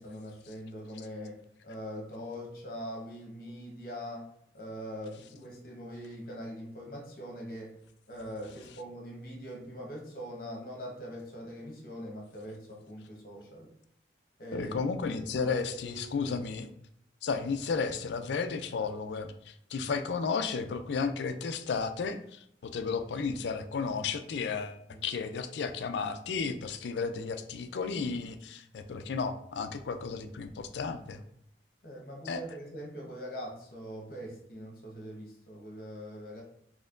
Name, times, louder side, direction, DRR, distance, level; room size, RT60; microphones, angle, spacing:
voice 1, 0.0-1.4 1.6-7.8 8.1-13.7 14.4-14.8 15.1-16.3 24.9-25.0 31.8-36.4, equal, 50° left, -1 dB, 1.0 m, -42 dB
voice 2, 14.5-16.7 17.2-31.2 32.3-32.4, left 5 dB, 75° left, 9 dB, 0.4 m, -33 dB
4.2 x 2.9 x 2.5 m, 0.68 s
head